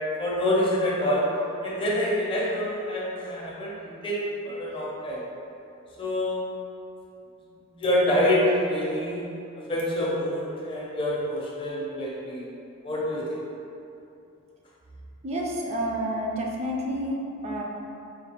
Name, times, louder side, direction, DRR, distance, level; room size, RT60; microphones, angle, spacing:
voice 1, 0.2-1.3 1.6-4.2 4.4-5.3 6.0-6.4 7.7-9.3 9.7-12.5 12.8-13.3, left 1 dB, 25° left, -5 dB, 0.5 m, -26 dB
voice 2, 15.2-17.6, equal, 30° right, -1 dB, 0.4 m, -29 dB
5.1 x 2.2 x 2.9 m, 2.7 s
head